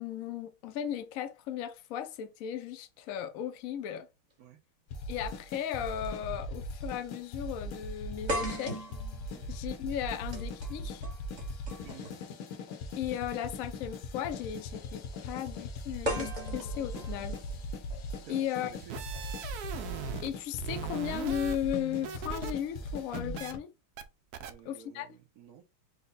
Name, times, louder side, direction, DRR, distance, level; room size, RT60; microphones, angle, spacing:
voice 1, 0.0-4.1 5.1-8.8 9.5-11.1 12.9-17.4 18.3-18.7 20.2-23.7 24.6-25.2, left 10 dB, 70° left, 0.7 m, -36 dB
sound 1, 4.9-23.6, left 1 dB, 90° left, 1.8 m, -40 dB
sound 2, 5.1-5.2 6.3-6.5 6.8-6.9 8.3-12.3 13.5-13.7 16.0-18.1, equal, 30° right, 0.9 m, -38 dB
voice 2, 18.2-19.1 24.5-25.6, right 9 dB, 60° right, 1.0 m, -52 dB
sound 3, 18.7-20.3 20.6-22.5 22.8-23.5 24.0-24.1 24.3-24.5, right 8 dB, 85° right, 0.8 m, -40 dB
5.4 x 2.2 x 3.9 m
omnidirectional pair, 2.4 m